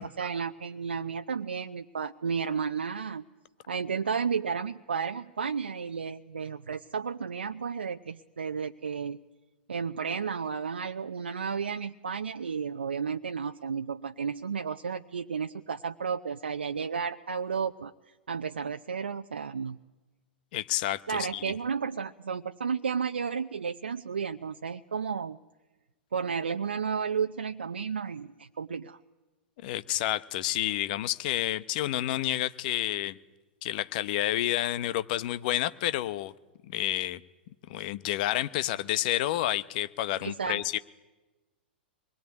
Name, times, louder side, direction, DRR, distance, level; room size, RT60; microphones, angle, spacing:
voice 1, 0.0-3.2 3.7-9.2 9.7-17.9 18.3-19.8 21.1-25.4 26.1-29.0 40.2-40.6, right 6 dB, 80° right, 6 dB, 0.7 m, -32 dB
voice 2, 20.5-21.5 29.6-33.2 33.6-36.3 36.6-37.2 37.7-40.8, left 14 dB, 55° left, 15 dB, 1.0 m, -29 dB
25.5 x 21.0 x 9.7 m, 1.2 s
hypercardioid pair, 105°, 6 cm